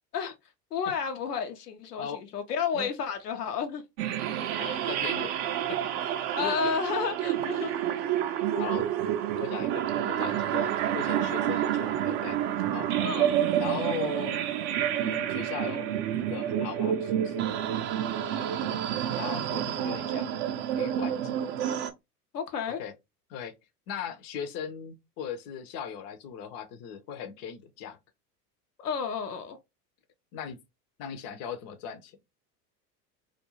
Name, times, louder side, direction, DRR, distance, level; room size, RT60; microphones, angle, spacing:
voice 1, 0.7-3.8 6.4-7.7 13.0-13.5 18.2-18.7 22.3-22.8 28.8-29.6, left 6 dB, 80° left, 0.7 m, -32 dB
sound 1, 4.0-21.9, right 10 dB, 40° right, 0.5 m, -29 dB
voice 2, 4.6-5.3 5.7-6.1 6.4-6.7 8.6-8.9 9.4-12.4 12.7-12.9 13.6-14.4 14.9-15.9 16.3-17.5 19.0-20.4 20.7-21.4 22.7-22.9 23.3-23.6 23.9-28.0 30.3-30.6 31.0-32.1, left 7 dB, 35° left, 0.5 m, -38 dB
2.4 x 2.2 x 2.9 m
figure-of-eight pair, 80°, 47 cm